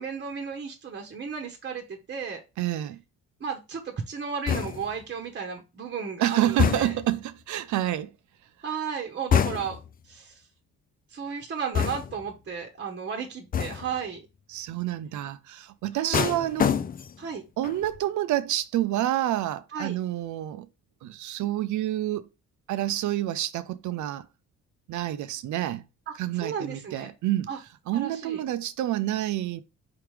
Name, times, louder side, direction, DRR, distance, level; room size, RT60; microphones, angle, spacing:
voice 1, 0.0-2.4 3.4-6.9 8.6-9.8 10.1-10.4 11.1-14.2 16.0-16.3 17.2-17.4 19.7-20.0 26.1-26.2 26.4-27.1 27.5-27.6 27.9-28.4, right 6 dB, 35° right, 1.0 m, -34 dB
voice 2, 2.6-3.0 6.2-8.1 14.5-16.7 17.6-20.7 21.0-22.3 22.7-24.3 24.9-25.8 26.1-29.6, right 13 dB, 75° right, 0.5 m, -28 dB
sound 1, 4.5-5.0 6.6-7.2 9.3-9.9 11.7-12.3 13.5-14.0 16.1-17.3 17.6-18.0, left 8 dB, 30° left, 0.4 m, -26 dB
4.8 x 3.4 x 3.2 m
cardioid pair, 90°, 30 cm